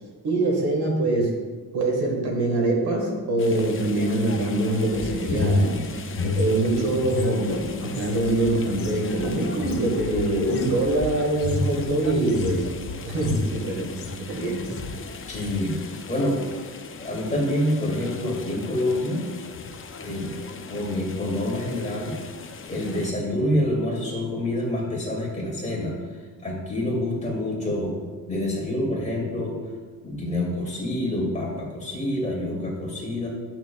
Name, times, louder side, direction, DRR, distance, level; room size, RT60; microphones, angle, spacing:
voice 1, 0.2-1.3 1.7-6.1 6.3-12.7 13.0-13.9 14.2-14.7, right 1 dB, 70° right, 0 dB, 1.8 m, -24 dB
sound 1, 3.4-23.1, left 5 dB, 35° left, 0.5 m, -40 dB
sound 2, 5.0-7.3 7.6-14.3 14.6-15.0 15.3-15.6, left 2 dB, 80° left, 1.7 m, -30 dB
voice 2, 15.3-16.4 17.0-19.3 20.0-20.3 20.7-22.1 22.7-25.9 26.4-28.0 28.3-29.6 30.0-33.3, left 1 dB, 15° left, -3 dB, 2.2 m, -27 dB
11.0 x 6.2 x 2.3 m, 1.4 s
wide cardioid pair, 145°, 39 cm